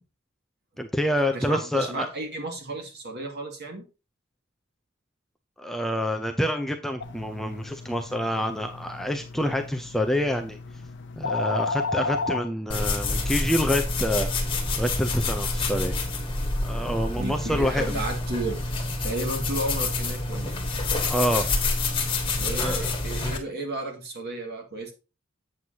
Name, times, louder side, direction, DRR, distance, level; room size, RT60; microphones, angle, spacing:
voice 1, 0.8-2.1 5.6-10.6 11.2-14.3 14.8-16.0 16.6-18.0 21.1-21.5 22.4-22.9, equal, ahead, 5 dB, 0.4 m, -27 dB
voice 2, 1.3-3.8 17.2-20.5 22.4-24.9, right 2 dB, 50° right, 2 dB, 2.1 m, -33 dB
sound 1, 7.0-12.4, left 4 dB, 55° left, 0.7 m, -33 dB
sound 2, 12.7-23.4, left 3 dB, 25° left, 1.5 m, -27 dB
7.7 x 7.7 x 2.8 m, 0.30 s
head